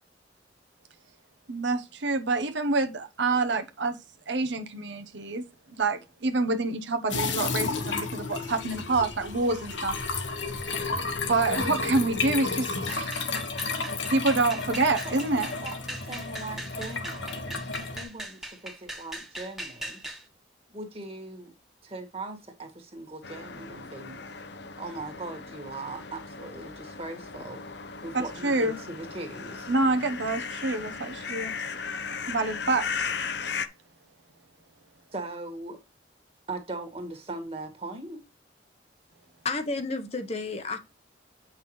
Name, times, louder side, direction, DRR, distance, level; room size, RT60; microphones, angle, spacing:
voice 1, 1.5-4.0 4.3-5.4 5.7-10.0 11.3-13.3 14.1-15.5 28.1-28.8 29.7-31.5 32.3-32.9, right 3 dB, 75° right, 0.9 m, -27 dB
sound 1, 7.1-18.0, left 4 dB, 80° left, 1.6 m, -32 dB
sound 2, 12.9-20.2, right 1 dB, ahead, 1.3 m, -40 dB
voice 2, 15.0-20.0 20.7-21.5 21.8-24.3 24.8-27.6 28.0-29.7 35.1-35.8 36.5-38.2, right 2 dB, 30° right, 1.9 m, -40 dB
sound 3, 23.2-33.7, left 5 dB, 65° left, 0.8 m, -37 dB
voice 3, 39.4-40.8, left 3 dB, 35° left, 1.0 m, -31 dB
8.6 x 5.8 x 3.2 m
head